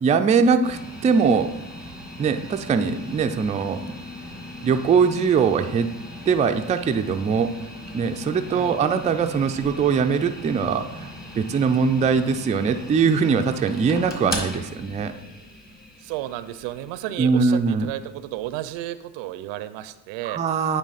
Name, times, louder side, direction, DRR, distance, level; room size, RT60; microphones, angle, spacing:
voice 1, 0.0-1.5 2.2-3.8 4.6-5.9 6.3-7.5 7.9-11.1 11.4-15.1 17.2-17.9 20.2-20.8, right 5 dB, 20° right, 6 dB, 0.3 m, -21 dB
sound 1, 0.6-18.7, left 1 dB, 20° left, 1.5 m, -39 dB
voice 2, 16.0-20.4, right 14 dB, 80° right, 13 dB, 0.5 m, -33 dB
9.0 x 3.3 x 4.0 m, 0.96 s
supercardioid pair, 75°, 44 cm